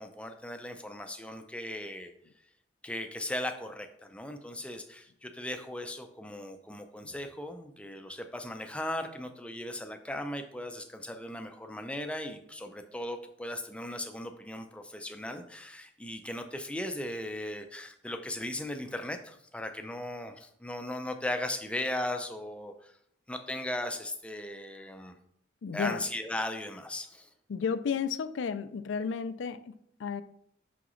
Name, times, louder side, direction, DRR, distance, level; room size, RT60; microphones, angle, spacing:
voice 1, 0.0-2.1 2.8-22.9 23.3-25.2 25.7-27.3, left 1 dB, 5° left, 0.4 m, -37 dB
voice 2, 25.6-26.0 27.5-30.2, left 6 dB, 75° left, 0.4 m, -33 dB
6.1 x 5.8 x 3.1 m
head